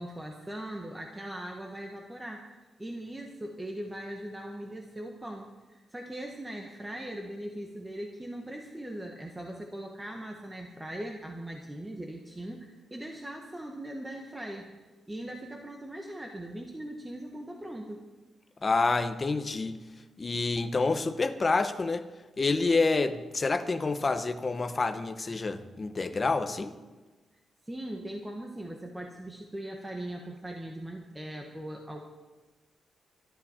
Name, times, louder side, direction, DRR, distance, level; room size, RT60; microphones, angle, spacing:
voice 1, 0.0-2.4 2.8-14.7 15.1-18.0 27.6-32.0, right 1 dB, 10° right, 1.1 m, -40 dB
voice 2, 18.6-19.8 20.2-22.1 22.4-26.8, left 3 dB, 25° left, 0.8 m, -28 dB
24.5 x 12.5 x 4.3 m
wide cardioid pair, 180°, 0 cm